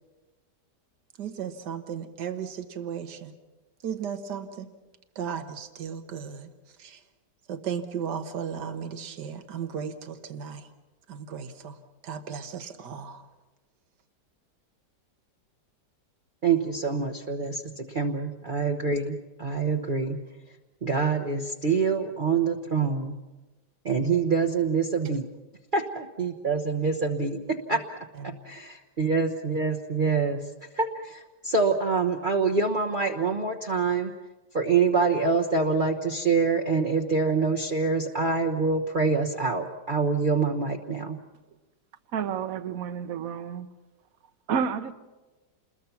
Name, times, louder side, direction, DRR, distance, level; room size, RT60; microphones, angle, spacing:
voice 1, 1.2-3.3 3.8-4.7 5.2-6.5 6.8-7.0 7.5-10.7 11.1-11.8 12.0-13.3 27.7-27.8 28.2-28.4, right 7 dB, 80° right, 8 dB, 1.9 m, -35 dB
voice 2, 16.4-20.2 20.8-23.1 23.8-25.3 25.7-27.8 28.2-30.4 30.8-34.1 34.5-41.2, right 4 dB, 35° right, 1 dB, 1.1 m, -26 dB
voice 3, 42.1-43.7 44.5-44.9, right 7 dB, 60° right, 11 dB, 1.3 m, -30 dB
28.5 x 21.5 x 5.9 m, 1.2 s
omnidirectional pair, 1.8 m